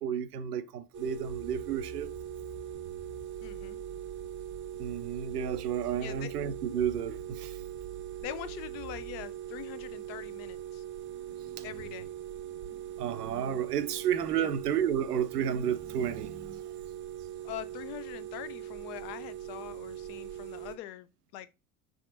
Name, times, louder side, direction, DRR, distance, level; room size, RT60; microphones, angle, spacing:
voice 1, 0.0-2.1 4.8-7.6 11.3-11.7 12.7-16.6, right 8 dB, 85° right, 0.5 m, -32 dB
sound 1, 0.9-20.8, right 11 dB, 25° right, 0.6 m, -41 dB
sound 2, 1.2-9.2, right 2 dB, 35° left, 1.3 m, -50 dB
voice 2, 3.4-3.8 6.0-6.3 8.2-10.8 11.6-12.1 14.4-14.5 17.4-21.5, left 12 dB, 55° left, 0.6 m, -43 dB
4.8 x 3.5 x 2.6 m
figure-of-eight pair, 65°, 45 cm